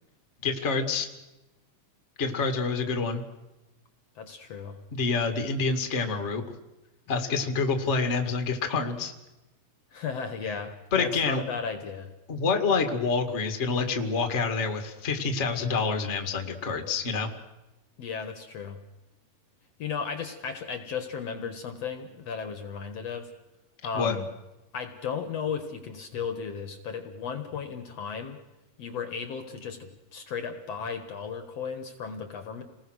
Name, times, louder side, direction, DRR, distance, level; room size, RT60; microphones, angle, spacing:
voice 1, 0.4-1.1 2.2-3.2 4.9-6.4 7.1-9.1 10.9-11.4 12.3-17.3 23.9-24.1, left 4 dB, 25° left, 6 dB, 1.8 m, -27 dB
voice 2, 4.2-4.8 9.9-12.1 18.0-18.8 19.8-23.3 23.8-24.3 24.7-28.4 28.8-32.6, left 6 dB, 55° left, 7 dB, 2.3 m, -35 dB
29.5 x 20.0 x 6.4 m, 1.0 s
omnidirectional pair, 3.7 m